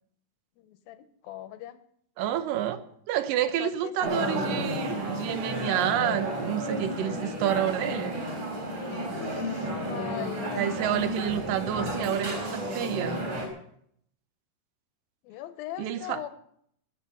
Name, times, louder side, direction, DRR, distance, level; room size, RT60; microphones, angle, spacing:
voice 1, 0.6-1.8 3.6-4.3 9.1-10.7 15.2-16.3, left 12 dB, 75° left, 11 dB, 2.6 m, -40 dB
voice 2, 2.2-8.2 10.5-13.2 15.8-16.2, right 11 dB, 70° right, 11 dB, 2.3 m, -29 dB
sound 1, 4.0-13.5, equal, 45° right, 5.3 m, -32 dB
20.5 x 8.2 x 5.6 m, 0.68 s
omnidirectional pair, 4.6 m